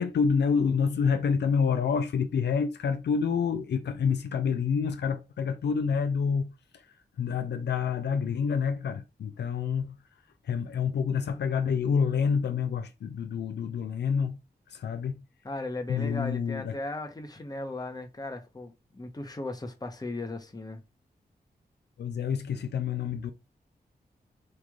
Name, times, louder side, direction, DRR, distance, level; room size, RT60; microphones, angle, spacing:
voice 1, 0.0-10.0 10.4-14.4 14.7-15.2 15.9-16.8 22.0-23.3, left 6 dB, 80° left, 0.4 m, -28 dB
voice 2, 15.4-20.8, left 2 dB, 20° left, 0.9 m, -37 dB
3.1 x 2.5 x 3.5 m
cardioid pair, 55°, 17 cm